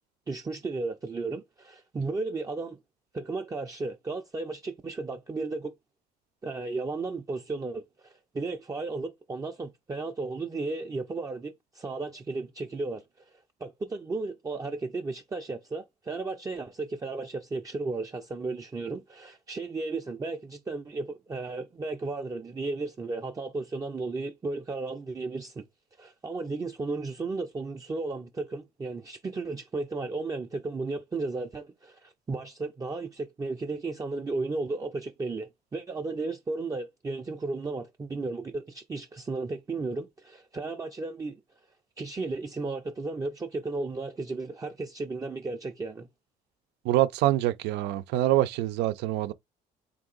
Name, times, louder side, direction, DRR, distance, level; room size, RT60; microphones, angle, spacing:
voice 1, 0.3-2.8 3.1-5.7 6.4-13.0 13.6-25.6 26.0-41.4 42.0-46.1, right 3 dB, 20° right, 0.5 m, -34 dB
voice 2, 46.8-49.3, right 15 dB, 90° right, 0.5 m, -25 dB
3.6 x 2.8 x 3.8 m
cardioid pair, 110°, 17 cm